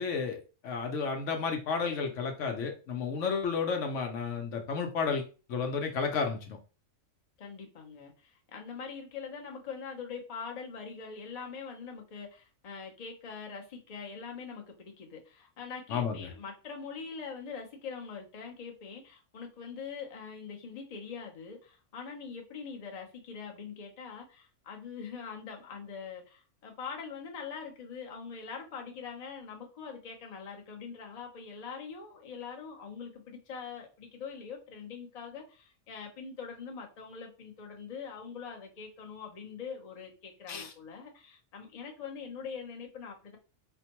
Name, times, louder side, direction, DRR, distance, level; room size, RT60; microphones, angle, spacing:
voice 1, 0.0-6.6 15.9-16.3 40.5-40.7, left 5 dB, 70° left, 0.9 m, -32 dB
voice 2, 7.4-43.4, left 6 dB, 40° left, 0.6 m, -43 dB
4.3 x 2.1 x 2.9 m
omnidirectional pair, 1.4 m